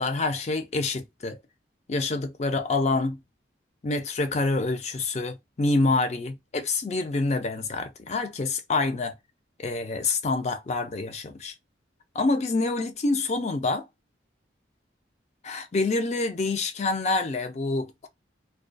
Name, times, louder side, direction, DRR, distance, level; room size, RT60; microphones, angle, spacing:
voice 1, 0.0-1.4 1.9-3.2 3.8-9.1 9.6-11.5 12.1-13.9 15.4-18.1, left 3 dB, 35° left, 0.4 m, -27 dB
2.3 x 2.2 x 2.5 m
head